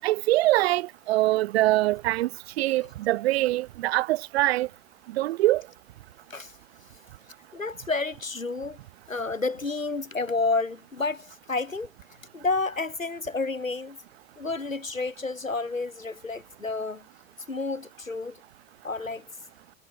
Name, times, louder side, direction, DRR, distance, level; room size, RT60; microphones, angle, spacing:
voice 1, 0.0-2.3 2.6-4.7 5.1-5.6, right 17 dB, 50° right, 6.0 m, -23 dB
voice 2, 7.5-8.8 9.1-11.9 12.3-14.0 14.4-17.1 17.5-18.4 18.8-19.3, left 3 dB, 85° left, 4.0 m, -30 dB
figure-of-eight pair, 100°, 39 cm